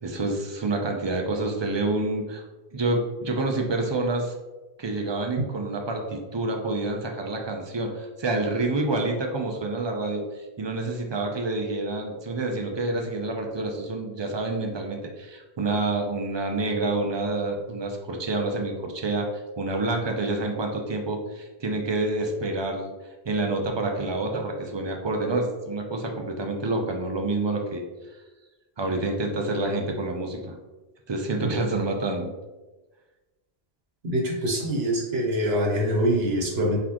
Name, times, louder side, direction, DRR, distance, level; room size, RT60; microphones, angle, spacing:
voice 1, 0.0-2.4 2.7-4.3 4.8-19.3 19.6-22.9 23.3-27.8 28.8-30.6 31.1-32.3, right 2 dB, 35° right, 2 dB, 0.4 m, -28 dB
voice 2, 34.0-36.8, equal, 75° right, -1 dB, 1.2 m, -24 dB
4.1 x 3.7 x 2.9 m, 1.2 s
omnidirectional pair, 1.1 m